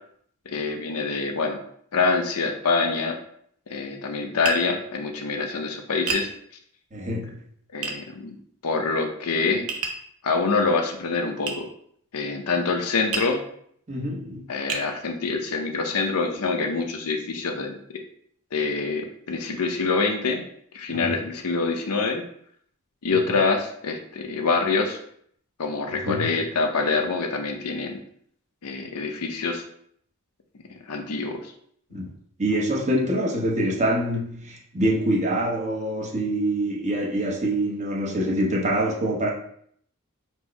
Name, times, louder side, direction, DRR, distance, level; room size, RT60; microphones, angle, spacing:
voice 1, 0.5-1.6 1.9-3.2 3.7-6.3 7.7-8.4 8.6-9.7 10.2-11.7 12.1-13.4 14.5-17.8 18.5-20.4 20.7-22.2 23.0-25.0 25.6-28.0 28.6-29.6 30.9-31.5, left 4 dB, 80° left, 4 dB, 0.6 m, -25 dB
Tap, 4.4-4.7 6.1-6.3 7.8-8.0 9.7-10.0 11.5-11.6 13.1-13.4 14.1-14.2 14.7-14.9, right 4 dB, 70° right, 0.6 m, -29 dB
voice 2, 6.9-7.4 13.9-14.4 20.9-21.2 23.1-23.2 26.0-26.3 31.9-32.1 32.4-39.3, right 1 dB, 30° right, -3 dB, 0.8 m, -25 dB
4.4 x 2.0 x 4.5 m, 0.65 s
head